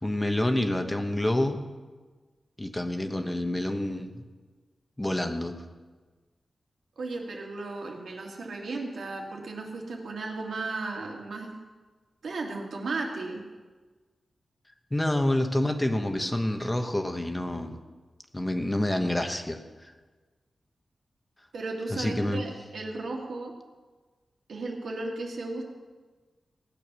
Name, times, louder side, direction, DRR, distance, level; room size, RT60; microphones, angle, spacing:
voice 1, 0.0-1.6 2.6-4.2 5.0-5.5 14.9-17.8 18.3-19.9 21.9-22.4, left 1 dB, 15° left, 5 dB, 1.1 m, -28 dB
voice 2, 7.0-11.5 12.2-13.4 21.5-23.5 24.5-25.6, right 3 dB, 85° right, -1 dB, 2.5 m, -35 dB
17.5 x 8.7 x 6.3 m, 1.3 s
wide cardioid pair, 130°, 0 cm